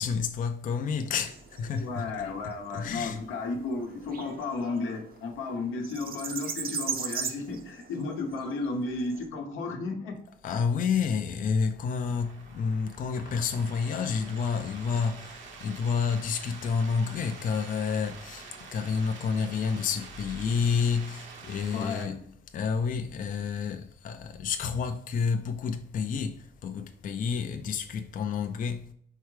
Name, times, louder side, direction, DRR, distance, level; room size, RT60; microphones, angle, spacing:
voice 1, 0.0-2.1 2.7-3.2 10.4-18.5 18.7-22.2 22.5-26.4 26.6-28.8, left 6 dB, 45° left, 0.4 m, -29 dB
sound 1, 1.2-9.2, right 6 dB, 50° right, 0.6 m, -39 dB
voice 2, 1.8-10.1 21.7-22.2, left 3 dB, 85° left, 0.9 m, -33 dB
sound 2, 12.0-22.0, right 4 dB, 75° right, 0.9 m, -47 dB
4.5 x 3.5 x 3.2 m
cardioid pair, 90°, 20 cm